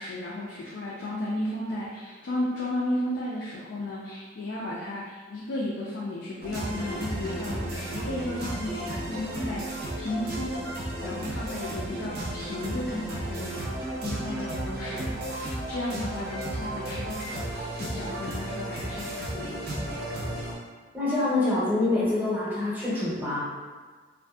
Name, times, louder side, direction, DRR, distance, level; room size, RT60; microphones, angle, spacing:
voice 1, 0.0-10.7 11.0-13.6 14.0-19.9, left 1 dB, 70° left, -4 dB, 0.3 m, -34 dB
sound 1, 6.4-20.5, right 1 dB, 55° right, 0.6 m, -34 dB
voice 2, 20.9-23.4, left 2 dB, 10° right, -9 dB, 0.7 m, -26 dB
2.6 x 2.4 x 2.3 m, 1.4 s
head